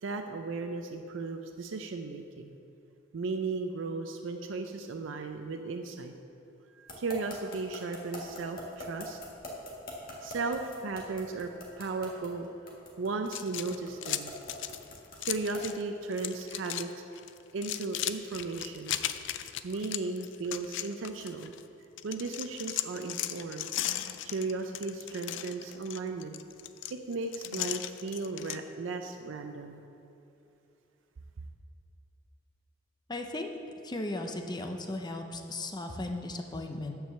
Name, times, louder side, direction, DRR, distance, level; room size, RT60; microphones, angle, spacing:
voice 1, 0.0-2.5 3.1-6.1 6.8-9.2 10.2-11.5 11.8-12.5 13.0-14.4 15.2-16.9 17.5-19.0 19.6-21.5 22.0-23.7 24.2-26.4 26.9-29.8, right 3 dB, 85° right, 5 dB, 0.5 m, -35 dB
sound 1, 6.9-15.8, left 1 dB, 50° left, 1.7 m, -42 dB
sound 2, 13.3-15.8 16.1-16.9 17.2-21.6 22.0-28.6, left 12 dB, 70° left, 0.4 m, -37 dB
voice 2, 33.1-33.6 33.8-36.9, left 2 dB, 20° left, 5 dB, 0.6 m, -36 dB
9.2 x 4.8 x 6.7 m, 2.7 s
head